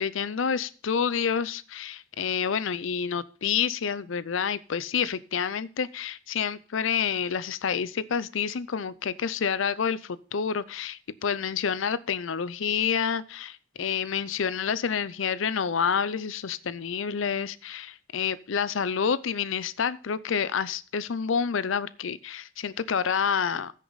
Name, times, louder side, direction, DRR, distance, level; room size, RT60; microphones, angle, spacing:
voice 1, 0.0-23.7, left 7 dB, 80° left, 17 dB, 0.5 m, -28 dB
15.0 x 6.5 x 4.0 m, 0.39 s
head